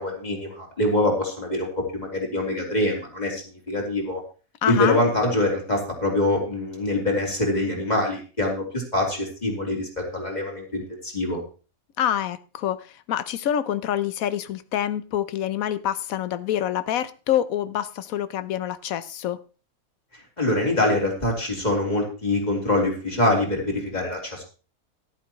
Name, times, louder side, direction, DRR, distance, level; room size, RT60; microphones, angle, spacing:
voice 1, 0.0-3.4 3.7-4.2 4.6-11.4 20.4-24.4, left 1 dB, 30° left, 0 dB, 3.2 m, -24 dB
voice 2, 4.6-5.0 12.0-19.4, left 10 dB, 75° left, 14 dB, 1.1 m, -26 dB
14.0 x 11.0 x 3.0 m, 0.35 s
omnidirectional pair, 1.5 m